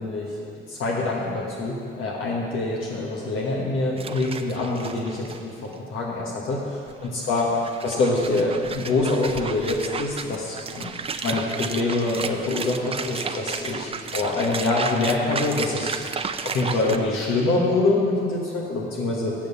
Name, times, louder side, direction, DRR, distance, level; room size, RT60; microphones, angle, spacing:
voice 1, 0.0-11.0 11.2-15.9 16.4-19.3, left 2 dB, 85° left, -3 dB, 1.4 m, -25 dB
sound 1, 4.0-5.4 5.7-5.8 6.9-17.0, right 5 dB, 30° right, 0.5 m, -33 dB
7.5 x 7.4 x 6.9 m, 2.3 s
cardioid pair, 90°, 20 cm